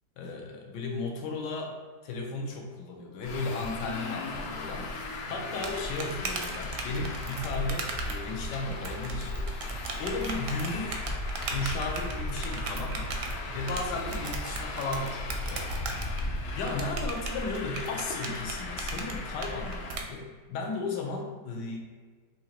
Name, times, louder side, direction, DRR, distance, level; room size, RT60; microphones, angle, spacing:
voice 1, 0.2-11.0 11.5-21.8, left 3 dB, 85° left, 1 dB, 1.4 m, -35 dB
Traffic noise roadway noise, 3.2-20.0, left 2 dB, 65° left, 0.7 m, -36 dB
sound 1, 5.0-20.0, right 4 dB, 80° right, 1.3 m, -38 dB
sound 2, 6.9-14.4, right 4 dB, 60° right, 0.5 m, -44 dB
6.2 x 2.8 x 2.9 m, 1.5 s
omnidirectional pair, 1.8 m